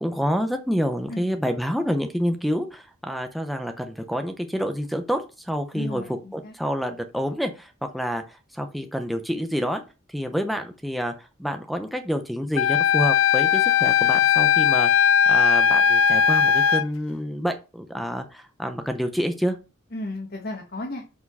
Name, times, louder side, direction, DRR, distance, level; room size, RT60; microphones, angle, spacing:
voice 1, 0.0-6.0 6.6-9.8 10.1-19.6, equal, ahead, 7 dB, 0.6 m, -28 dB
voice 2, 5.7-6.6 19.9-21.0, left 1 dB, 50° left, 1 dB, 1.4 m, -34 dB
Wind instrument woodwind instrument, 12.6-16.8, left 8 dB, 65° left, 0.3 m, -18 dB
6.3 x 4.8 x 5.4 m, 0.30 s
head